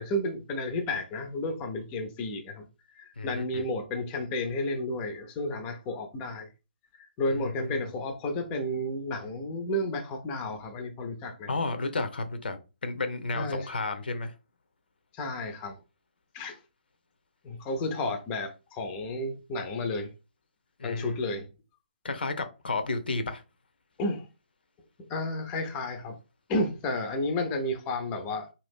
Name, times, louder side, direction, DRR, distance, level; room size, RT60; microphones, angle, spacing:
voice 1, 0.0-2.7 2.9-6.5 7.0-11.5 13.3-13.7 15.1-15.8 16.3-16.6 17.4-20.1 20.8-21.5 24.0-24.3 25.1-26.2 26.5-28.5, left 1 dB, 20° left, 0.5 m, -32 dB
voice 2, 3.2-3.6 7.4-7.9 11.5-14.3 20.8-21.2 22.0-23.4, left 3 dB, 65° left, 0.6 m, -32 dB
2.7 x 2.4 x 3.5 m
figure-of-eight pair, 140°, 6 cm